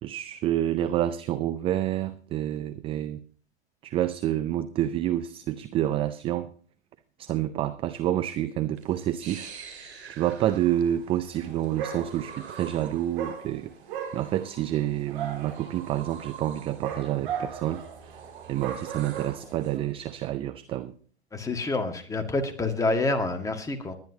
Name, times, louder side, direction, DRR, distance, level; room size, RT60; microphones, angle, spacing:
voice 1, 0.0-3.2 3.8-6.5 7.2-9.5 10.1-13.7 14.1-17.8 18.5-20.9, right 12 dB, 15° right, 13 dB, 0.4 m, -28 dB
sound 1, 8.8-19.8, right 6 dB, 75° right, 2.7 m, -46 dB
Dog, 11.3-11.5 11.7-12.5 13.1-19.8, right 8 dB, 50° right, 4.3 m, -37 dB
voice 2, 21.3-24.0, left 2 dB, 10° left, 5 dB, 1.7 m, -27 dB
20.5 x 10.5 x 2.8 m, 0.43 s
hypercardioid pair, 110°, 32 cm